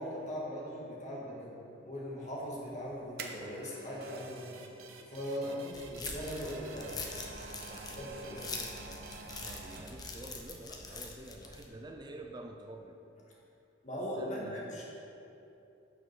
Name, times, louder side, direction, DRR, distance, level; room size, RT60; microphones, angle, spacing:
voice 1, 0.0-1.6 1.8-4.6 5.1-7.0 8.0-8.4 13.8-14.8, equal, 35° left, -5 dB, 2.0 m, -39 dB
sound 1, 2.6-4.3 5.5-10.2 10.5-10.6, right 3 dB, 50° right, 0.9 m, -48 dB
sound 2, 4.0-10.4, right 5 dB, 90° right, 0.9 m, -54 dB
sound 3, 5.7-11.7, left 3 dB, 20° left, 0.8 m, -44 dB
voice 2, 7.7-9.0 9.4-13.0 14.2-14.8, right 1 dB, 20° right, 3 dB, 0.4 m, -48 dB
11.5 x 6.5 x 4.6 m, 2.9 s
head